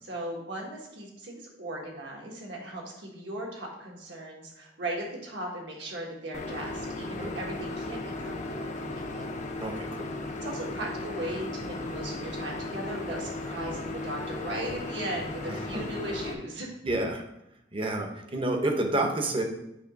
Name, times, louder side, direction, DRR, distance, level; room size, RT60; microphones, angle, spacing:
voice 1, 0.0-9.3 10.4-16.7, right 1 dB, 70° right, -1 dB, 1.5 m, -37 dB
sound 1, 6.3-16.3, left 2 dB, 40° left, 0.6 m, -36 dB
voice 2, 9.6-10.1 15.5-15.9 16.8-17.2 17.7-19.4, right 2 dB, 30° right, 3 dB, 0.8 m, -29 dB
7.1 x 3.0 x 5.1 m, 0.87 s
head